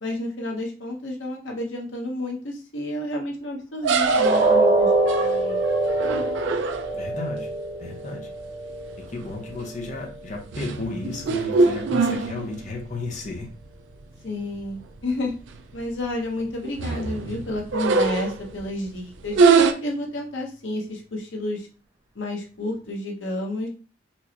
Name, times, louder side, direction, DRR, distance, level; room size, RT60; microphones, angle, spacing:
voice 1, 0.0-5.6 14.2-15.3 15.7-19.4 19.8-21.7 22.1-23.7, left 1 dB, 90° left, 1 dB, 0.9 m, -30 dB
sound 1, 3.8-7.2 8.8-9.1 9.5-9.8 10.3-12.8 13.2-13.3 13.6-13.7 14.6-14.7 15.0-15.1 15.5-15.9 16.4-18.6 19.3-19.7, right 4 dB, 80° right, 0.4 m, -23 dB
sound 2, 4.2-10.2 10.6-10.8 11.3-11.4, right 2 dB, 30° right, 0.5 m, -24 dB
voice 2, 6.9-7.5 7.8-8.3 9.1-13.5, left 2 dB, 40° left, 0 dB, 0.7 m, -33 dB
4.4 x 2.0 x 2.8 m, 0.35 s
head